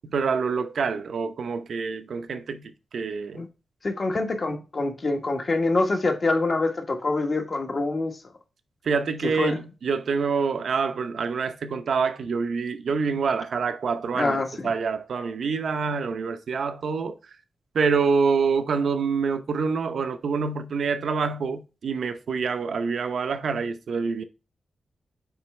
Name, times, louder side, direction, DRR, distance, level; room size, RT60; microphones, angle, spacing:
voice 1, 0.0-3.4 8.8-17.2 17.7-24.2, right 5 dB, 75° right, 0.7 m, -26 dB
voice 2, 3.8-8.1 9.4-9.6 14.1-14.7, left 2 dB, 40° left, 1.3 m, -25 dB
7.0 x 4.5 x 3.2 m
wide cardioid pair, 95°, 0 cm